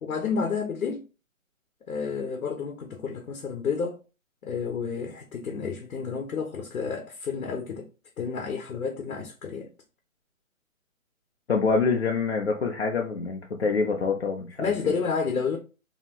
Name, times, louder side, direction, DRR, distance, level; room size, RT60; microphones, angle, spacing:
voice 1, 0.0-1.0 1.9-4.0 4.4-7.9 8.2-9.7 14.6-15.6, left 5 dB, 80° left, 0.8 m, -30 dB
voice 2, 11.5-14.7, left 4 dB, 50° left, 0.5 m, -26 dB
2.8 x 2.2 x 2.8 m
hypercardioid pair, 170°, 42 cm